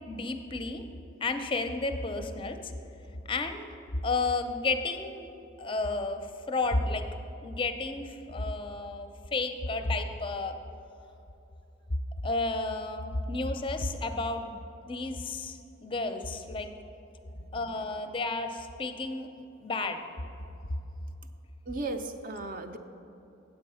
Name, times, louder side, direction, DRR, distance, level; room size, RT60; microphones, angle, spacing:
voice 1, 0.1-0.8 1.2-2.7 3.3-3.7 4.0-5.3 5.6-7.0 7.4-10.6 12.2-16.7 17.5-19.3 19.6-20.0, left 3 dB, 25° left, 7 dB, 0.5 m, -32 dB
voice 2, 17.4-17.7 21.7-22.8, right 2 dB, 45° right, 7 dB, 0.5 m, -36 dB
8.4 x 7.8 x 5.5 m, 2.9 s
head